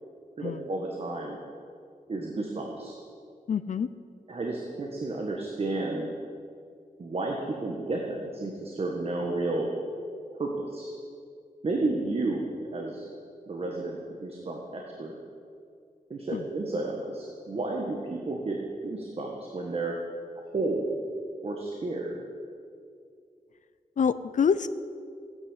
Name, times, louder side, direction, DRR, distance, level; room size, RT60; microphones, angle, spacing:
voice 1, 0.4-1.4 2.1-3.0 4.3-6.1 7.0-9.7 10.4-10.9 11.6-13.1 13.5-15.1 16.1-18.6 18.8-20.0 20.4-21.0 21.4-22.2, right 2 dB, 40° right, 0 dB, 1.6 m, -32 dB
voice 2, 3.5-3.9 16.3-16.4 24.0-24.7, left 6 dB, 55° left, 13 dB, 0.6 m, -26 dB
16.0 x 9.9 x 8.2 m, 2.3 s
wide cardioid pair, 170°, 15 cm